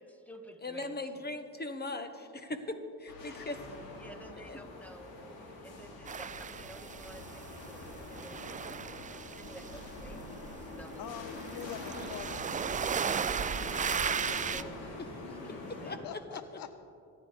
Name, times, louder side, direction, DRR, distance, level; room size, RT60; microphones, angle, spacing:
voice 1, 0.0-1.2 4.0-8.6 9.1-11.3 13.1-16.2, right 1 dB, 5° left, 5 dB, 1.7 m, -52 dB
voice 2, 0.6-3.6 4.4-4.6 11.9-12.2 15.9-16.4, left 2 dB, 25° left, 7 dB, 1.5 m, -39 dB
sound 1, 3.1-16.0, left 2 dB, 90° left, 2.4 m, -45 dB
sound 2, 6.1-7.7 7.9-14.6, right 7 dB, 25° right, 0.3 m, -36 dB
voice 3, 11.0-12.6 16.0-16.7, left 10 dB, 65° left, 12 dB, 0.6 m, -44 dB
24.0 x 10.0 x 3.5 m, 2.6 s
supercardioid pair, 65°, 37 cm